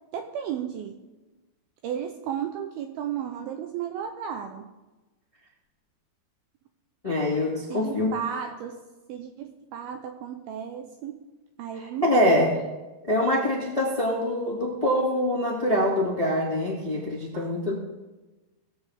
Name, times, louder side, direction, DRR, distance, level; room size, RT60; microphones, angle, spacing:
voice 1, 0.1-1.0 1.8-4.7 7.7-8.8 9.1-11.2 11.6-12.4 17.3-17.5, right 9 dB, 85° right, 6 dB, 2.2 m, -34 dB
voice 2, 7.0-8.1 11.8-12.5 13.1-17.7, left 1 dB, 25° left, -4 dB, 0.7 m, -24 dB
19.0 x 8.0 x 3.5 m, 1.1 s
omnidirectional pair, 4.9 m